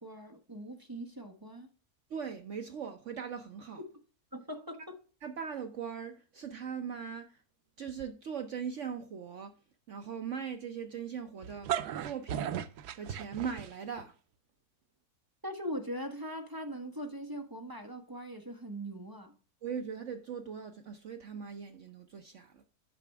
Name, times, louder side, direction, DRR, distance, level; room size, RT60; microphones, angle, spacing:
voice 1, 0.0-1.7 4.3-5.0 15.4-19.3, equal, 15° right, 0.8 m, -41 dB
voice 2, 2.1-3.8 5.2-7.4 7.8-9.5 9.9-11.7 12.0-12.6 13.0-14.1 19.6-22.6, right 7 dB, 60° right, 1.0 m, -40 dB
sound 1, 11.4-14.0, right 9 dB, 90° right, 1.2 m, -36 dB
9.1 x 5.9 x 3.4 m
omnidirectional pair, 1.7 m